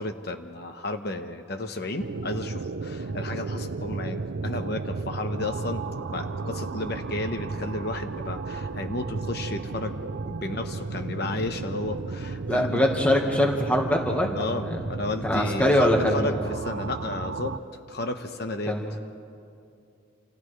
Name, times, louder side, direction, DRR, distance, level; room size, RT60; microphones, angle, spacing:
voice 1, 0.0-5.8 6.1-9.9 10.2-12.8 14.3-17.6 17.9-18.7, left 2 dB, 55° left, 6 dB, 1.0 m, -33 dB
sound 1, 2.0-17.6, right 3 dB, 75° right, 0.5 m, -34 dB
voice 2, 12.5-14.8 15.2-16.4 18.7-18.9, left 1 dB, 5° left, 1 dB, 1.5 m, -23 dB
29.0 x 28.0 x 3.3 m, 2.5 s
head